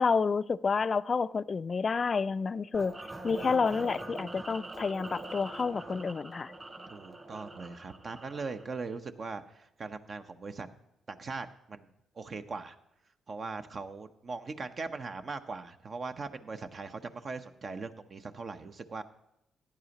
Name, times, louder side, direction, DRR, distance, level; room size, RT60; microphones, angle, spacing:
voice 1, 0.0-3.0 3.2-6.5, left 5 dB, 45° left, 16 dB, 0.4 m, -29 dB
sound 1, 2.7-8.7, right 2 dB, 30° right, 3.1 m, -43 dB
voice 2, 6.9-10.7 11.1-11.9 12.2-12.8 13.3-19.0, right 4 dB, 50° right, 8 dB, 0.9 m, -40 dB
15.5 x 10.0 x 3.0 m, 0.85 s
hypercardioid pair, 50°, 0 cm